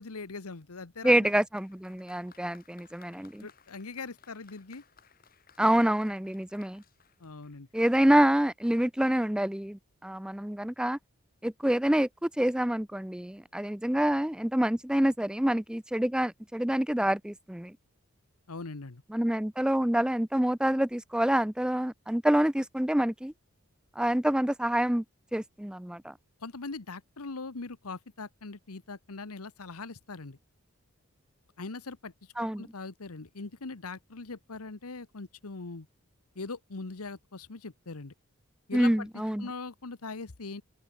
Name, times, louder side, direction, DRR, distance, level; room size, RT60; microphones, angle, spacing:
voice 1, 0.0-1.3 3.4-4.8 7.2-7.7 18.5-19.0 26.4-30.4 31.6-35.9 36.3-38.1 38.7-40.6, left 3 dB, 90° left, 1.2 m, -41 dB
voice 2, 1.0-3.5 5.6-6.8 7.7-11.0 11.4-17.8 19.1-23.3 24.0-25.0 25.3-26.1 32.4-32.7 38.7-39.5, right 1 dB, 5° right, 0.4 m, -27 dB
Applause, 1.5-8.0, left 7 dB, 40° left, 3.5 m, -61 dB
open air
head